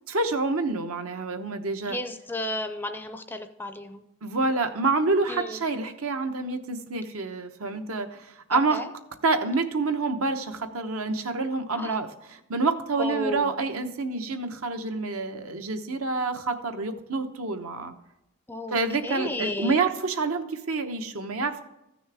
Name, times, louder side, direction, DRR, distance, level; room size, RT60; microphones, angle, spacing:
voice 1, 0.1-2.0 4.2-8.8 9.2-17.9 18.7-21.6, right 3 dB, 75° right, 7 dB, 1.0 m, -27 dB
voice 2, 1.9-4.0 5.3-5.6 8.5-8.9 11.7-12.0 13.0-13.5 18.5-18.8 19.0-19.9, left 1 dB, 10° left, 7 dB, 0.4 m, -33 dB
14.5 x 6.3 x 3.4 m, 0.88 s
head